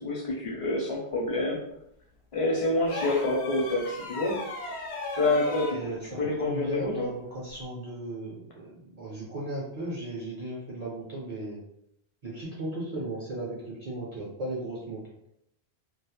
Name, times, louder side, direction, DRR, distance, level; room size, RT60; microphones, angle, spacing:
voice 1, 0.0-1.6 2.3-4.4 5.2-7.1, left 2 dB, 40° left, -3 dB, 0.6 m, -27 dB
sound 1, 2.9-5.8 7.5-7.7, left 2 dB, 90° left, 0.9 m, -36 dB
voice 2, 5.7-11.6 12.2-15.0, right 1 dB, 45° right, -5 dB, 0.6 m, -36 dB
2.2 x 2.0 x 2.9 m, 0.75 s
omnidirectional pair, 1.1 m